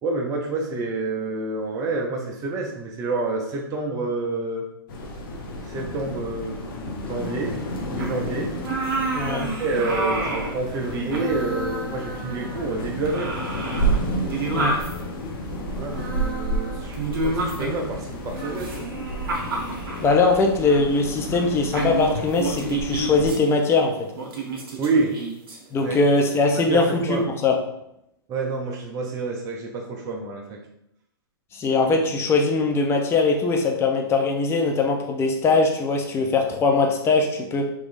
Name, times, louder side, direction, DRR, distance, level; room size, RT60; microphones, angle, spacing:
voice 1, 0.0-4.6 5.7-6.6 7.0-7.5 7.9-8.5 9.2-13.4 15.7-18.9 24.8-25.2 25.8-26.0 26.7-27.3 28.3-30.6, right 3 dB, 25° right, 0 dB, 0.6 m, -28 dB
sound 1, 4.9-23.3, right 1 dB, 55° left, 0.9 m, -31 dB
sound 2, 8.0-8.2 8.6-10.6 10.9-12.8 13.1-15.0 15.9-17.9 18.3-20.3 20.7-20.8 21.3-21.5 21.7-23.4 24.2-25.6 26.4-26.8, right 3 dB, 65° right, 1.1 m, -30 dB
voice 2, 9.1-9.5 14.5-14.7 20.0-23.9 25.7-27.6 31.5-37.7, left 3 dB, 20° left, 2 dB, 0.6 m, -21 dB
3.7 x 3.1 x 2.5 m, 0.80 s
hypercardioid pair, 115°, 13 cm